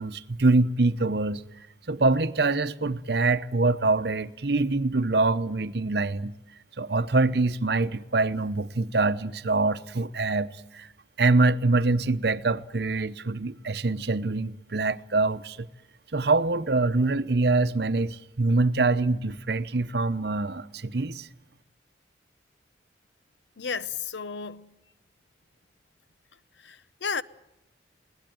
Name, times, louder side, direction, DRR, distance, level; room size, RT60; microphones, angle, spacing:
voice 1, 0.0-1.4 1.9-6.3 6.8-10.9 11.2-15.7 16.1-21.3, right 3 dB, 60° right, 0.8 m, -24 dB
voice 2, 23.6-24.7 26.6-27.2, left 5 dB, 75° left, 0.8 m, -33 dB
22.5 x 18.0 x 9.3 m
head